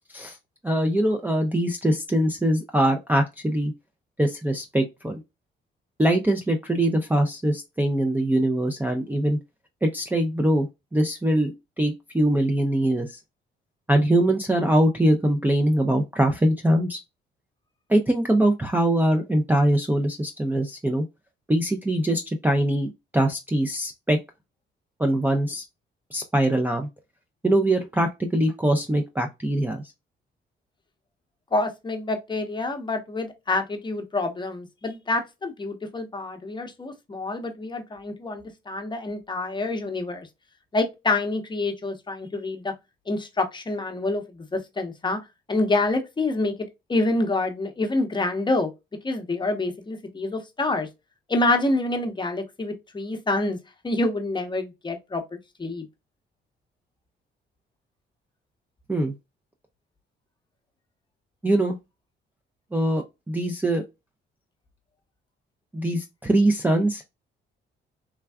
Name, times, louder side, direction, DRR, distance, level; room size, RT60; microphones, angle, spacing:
voice 1, 0.6-3.7 4.2-5.2 6.0-9.4 9.8-10.7 10.9-13.2 13.9-17.0 17.9-21.1 21.5-22.9 23.1-24.2 25.0-25.6 26.1-26.9 27.4-29.8 58.9-59.1 61.4-61.8 62.7-63.8 65.7-67.1, right 1 dB, 10° right, 0.4 m, -22 dB
voice 2, 31.5-40.3 40.7-42.7 43.1-45.2 45.5-46.5 46.9-48.7 49.0-50.9 51.3-53.6 53.8-55.8, left 2 dB, 25° left, 0.8 m, -27 dB
3.4 x 2.2 x 2.2 m
cardioid pair, 90°, 20 cm